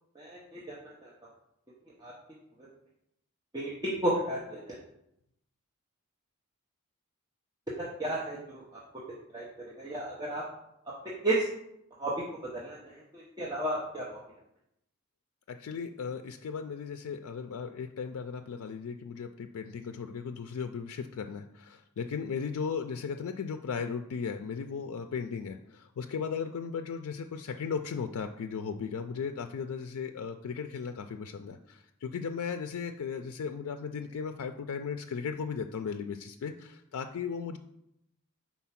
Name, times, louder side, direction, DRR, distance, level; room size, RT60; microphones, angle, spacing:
voice 1, 0.1-0.8 1.0-1.1 2.0-2.1 3.5-4.8 7.8-8.8 9.3-9.5 9.8-10.4 11.2-11.5 12.0-12.1 12.5-14.2, right 1 dB, 20° right, -6 dB, 0.8 m, -33 dB
voice 2, 15.5-37.6, left 6 dB, 80° left, 7 dB, 0.4 m, -36 dB
4.6 x 4.2 x 5.8 m, 0.80 s
head